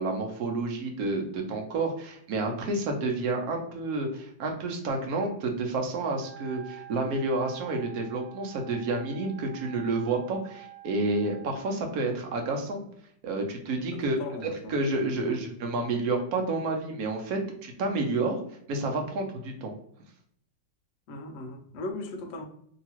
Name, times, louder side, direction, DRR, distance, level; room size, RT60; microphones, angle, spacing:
voice 1, 0.0-12.8 13.2-18.4 18.7-19.7, right 2 dB, 65° right, 2 dB, 1.0 m, -30 dB
voice 2, 2.5-2.8 13.9-14.8 15.2-15.4 21.1-22.4, left 2 dB, 75° left, 3 dB, 0.7 m, -38 dB
Wind instrument woodwind instrument, 6.1-11.7, right 13 dB, 85° right, 1.4 m, -48 dB
2.9 x 2.8 x 2.8 m, 0.67 s
omnidirectional pair, 2.0 m